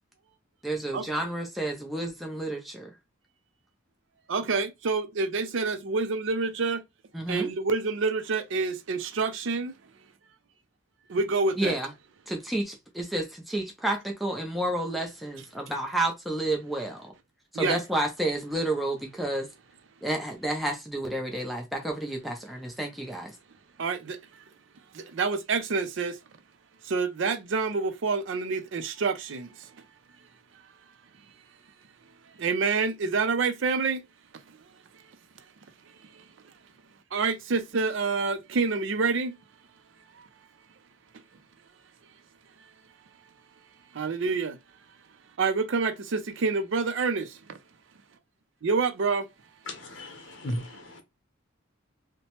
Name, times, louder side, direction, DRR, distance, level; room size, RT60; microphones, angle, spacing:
voice 1, 0.6-2.9 7.1-7.5 11.6-11.9 12.3-17.1 17.5-19.5 20.0-23.3, right 1 dB, ahead, 0.5 m, -30 dB
voice 2, 4.3-6.8 7.3-9.7 11.1-11.8 17.5-17.8 23.8-24.2 24.9-26.2 26.8-29.7 32.4-34.0 36.1-36.2 37.1-39.4 43.9-44.6 45.4-47.6 48.6-49.3, right 4 dB, 65° right, 0.4 m, -27 dB
voice 3, 49.7-51.0, left 1 dB, 60° left, 0.7 m, -36 dB
2.9 x 2.1 x 2.9 m
head